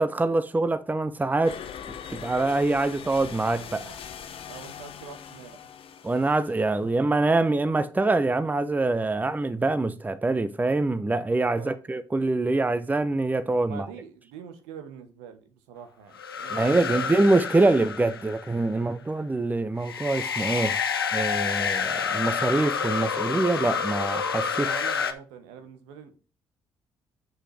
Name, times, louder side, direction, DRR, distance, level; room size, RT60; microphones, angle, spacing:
voice 1, 0.0-1.6 2.1-4.0 6.0-13.9 16.5-20.8 21.1-24.7, right 2 dB, 15° right, 0.6 m, -24 dB
sound 1, 1.4-7.0, left 8 dB, 50° left, 0.8 m, -42 dB
voice 2, 4.5-5.6 6.8-6.9 11.5-11.8 13.7-17.2 24.5-26.2, right 7 dB, 70° right, 1.1 m, -44 dB
sound 2, 16.1-18.7 19.8-25.1, left 6 dB, 85° left, 0.5 m, -29 dB
7.7 x 6.2 x 3.3 m
figure-of-eight pair, 45°, 12 cm